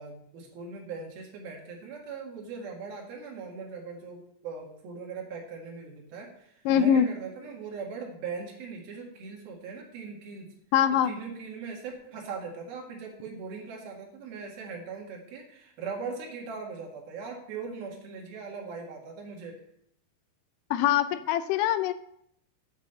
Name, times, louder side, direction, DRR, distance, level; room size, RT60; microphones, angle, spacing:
voice 1, 0.0-10.5 11.0-19.6, right 5 dB, 80° right, 1 dB, 3.6 m, -40 dB
voice 2, 6.7-7.1 10.7-11.1 20.7-21.9, left 9 dB, 85° left, 12 dB, 1.9 m, -23 dB
8.8 x 5.7 x 7.7 m, 0.73 s
omnidirectional pair, 4.3 m